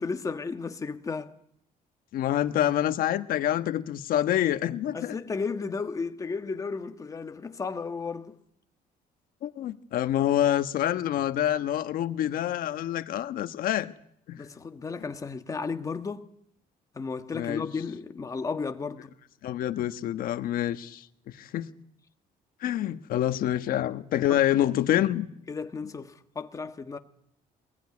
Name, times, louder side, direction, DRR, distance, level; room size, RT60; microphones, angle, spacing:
voice 1, 0.0-1.3 4.9-8.4 14.4-16.3 16.9-19.1 24.3-24.7 25.5-27.0, left 4 dB, 20° left, 1.4 m, -34 dB
voice 2, 2.1-5.2 9.4-13.9 14.3-14.4 17.3-17.7 19.4-21.1 21.4-21.7 22.6-25.3, left 12 dB, 70° left, 1.3 m, -27 dB
24.0 x 21.0 x 9.7 m
cardioid pair, 160°, 16 cm